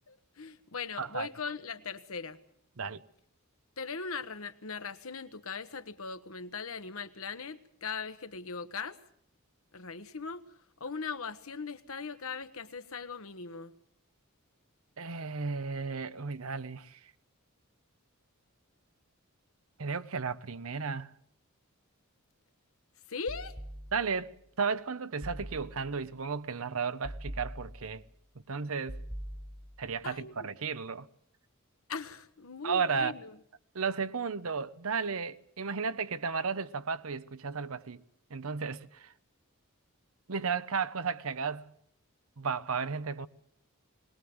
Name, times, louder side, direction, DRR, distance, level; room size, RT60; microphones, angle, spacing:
voice 1, 0.1-2.4 3.8-9.0 9.7-10.4 10.8-13.7 23.1-23.6 30.0-30.5 31.9-33.3, left 5 dB, 75° left, 1.2 m, -39 dB
voice 2, 1.0-1.3 2.8-3.0 15.0-17.0 19.8-21.1 23.9-28.0 28.5-29.0 29.8-31.1 32.6-33.1 33.7-38.0 38.3-39.1 40.3-41.7 42.4-43.3, right 5 dB, 75° right, 0.8 m, -34 dB
sound 1, 23.3-24.3 25.2-26.1 27.0-28.1 28.9-30.0, equal, 10° left, 1.3 m, -43 dB
22.0 x 19.5 x 7.9 m
head